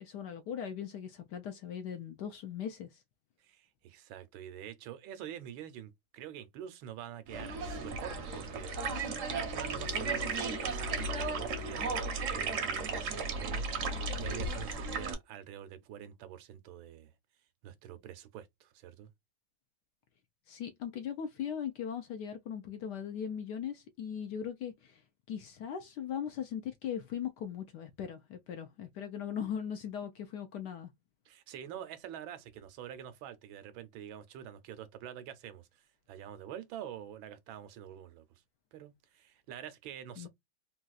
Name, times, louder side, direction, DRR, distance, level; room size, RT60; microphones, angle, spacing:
voice 1, 0.0-3.0 20.5-25.0 25.3-30.9 40.2-40.3, left 8 dB, 70° left, 1.0 m, -39 dB
voice 2, 3.4-17.1 17.6-19.1 31.3-35.8 36.1-38.2 38.7-40.3, right 10 dB, 80° right, 1.4 m, -46 dB
sound 1, 7.3-15.1, right 3 dB, 55° right, 0.9 m, -35 dB
Telephone, 9.8-11.8, left 12 dB, 90° left, 1.5 m, -48 dB
4.0 x 2.3 x 2.3 m
omnidirectional pair, 2.2 m